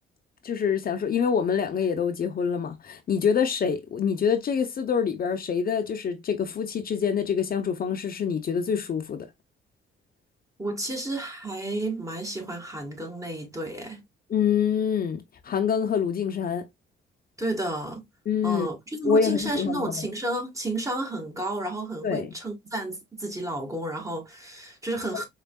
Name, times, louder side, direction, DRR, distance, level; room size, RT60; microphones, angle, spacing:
voice 1, 0.4-9.3 14.3-16.7 18.3-18.7 19.0-20.0 22.0-22.3 25.1-25.2, left 7 dB, 50° left, 0.8 m, -26 dB
voice 2, 10.6-14.0 17.4-18.1 18.4-25.3, right 2 dB, 15° right, 1.5 m, -31 dB
4.7 x 3.3 x 2.3 m
cardioid pair, 90°, 20 cm